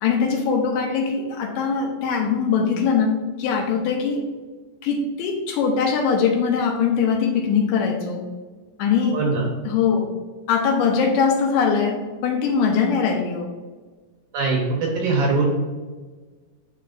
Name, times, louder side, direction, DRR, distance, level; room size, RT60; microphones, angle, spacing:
voice 1, 0.0-4.3 4.8-8.2 8.8-9.2 9.6-10.1 10.5-13.5, left 6 dB, 80° left, 2 dB, 2.1 m, -21 dB
voice 2, 9.1-9.4 14.3-15.4, right 3 dB, 70° right, -1 dB, 2.1 m, -21 dB
10.0 x 4.1 x 2.5 m, 1.4 s
omnidirectional pair, 4.2 m